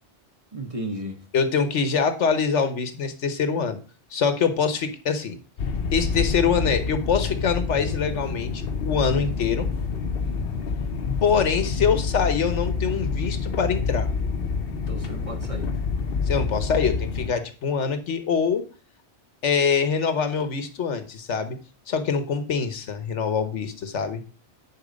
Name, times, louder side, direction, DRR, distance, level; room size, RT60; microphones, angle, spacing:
voice 1, 0.5-1.2 10.2-10.7 14.9-15.7, right 1 dB, 30° right, 1.3 m, -35 dB
voice 2, 1.3-3.8 4.1-5.4 5.9-9.7 11.2-14.1 16.3-18.7 19.4-21.6 21.9-24.2, left 6 dB, 85° left, 1.4 m, -24 dB
sound 1, 5.6-17.3, left 5 dB, 60° left, 0.9 m, -27 dB
10.0 x 4.5 x 5.1 m
omnidirectional pair, 1.2 m